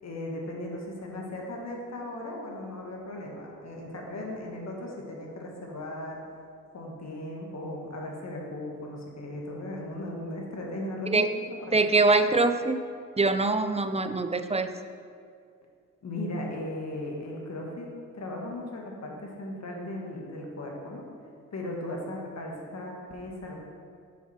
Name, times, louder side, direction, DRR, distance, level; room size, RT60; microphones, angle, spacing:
voice 1, 0.0-6.2 6.7-11.8 16.0-17.9 18.1-21.1 21.5-23.5, left 1 dB, 55° left, -1 dB, 1.8 m, -37 dB
voice 2, 11.7-12.8 13.2-14.7, right 3 dB, 20° right, 9 dB, 0.5 m, -23 dB
8.2 x 5.8 x 4.5 m, 2.2 s
cardioid pair, 60°, 33 cm